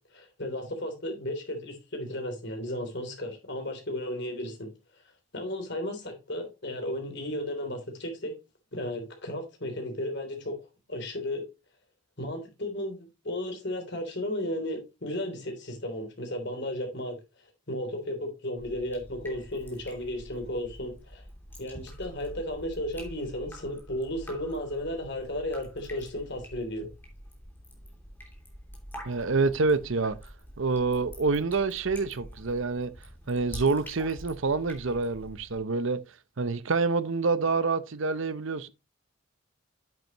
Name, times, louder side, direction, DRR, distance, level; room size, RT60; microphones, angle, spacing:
voice 1, 0.1-4.7 5.3-8.3 8.7-10.6 10.9-11.4 12.2-17.2 17.7-21.2 21.6-26.9, left 1 dB, 50° left, 3.2 m, -34 dB
Drip, 18.6-35.6, equal, 10° left, 3.0 m, -46 dB
voice 2, 29.0-30.2 30.6-32.9 33.3-36.0 36.4-38.7, right 4 dB, 65° right, 0.7 m, -27 dB
9.0 x 8.1 x 3.0 m
head